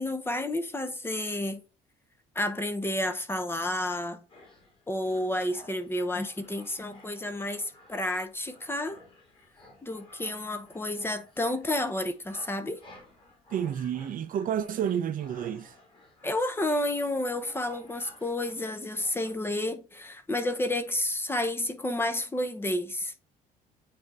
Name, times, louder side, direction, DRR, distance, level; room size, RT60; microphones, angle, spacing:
voice 1, 0.0-1.6 2.3-4.2 4.9-9.0 9.8-12.8 16.2-23.1, left 1 dB, 15° left, 0.8 m, -30 dB
sound 1, 4.3-19.3, left 1 dB, 30° left, 2.6 m, -55 dB
voice 2, 13.5-15.7, right 9 dB, 55° right, 0.7 m, -30 dB
8.7 x 2.9 x 4.7 m
cardioid pair, 110°, 17 cm